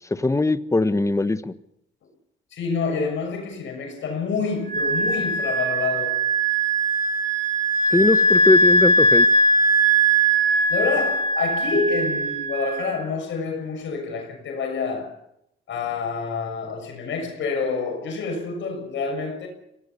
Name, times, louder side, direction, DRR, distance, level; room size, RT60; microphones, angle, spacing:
voice 1, 0.1-1.5 7.9-9.3, left 2 dB, 15° left, 1.3 m, -21 dB
voice 2, 2.5-6.3 10.7-15.1 15.7-19.5, left 4 dB, 70° left, 6.5 m, -27 dB
Wind instrument woodwind instrument, 4.7-13.0, right 2 dB, 45° right, 7.2 m, -20 dB
25.5 x 18.0 x 7.0 m
cardioid pair, 90°, 20 cm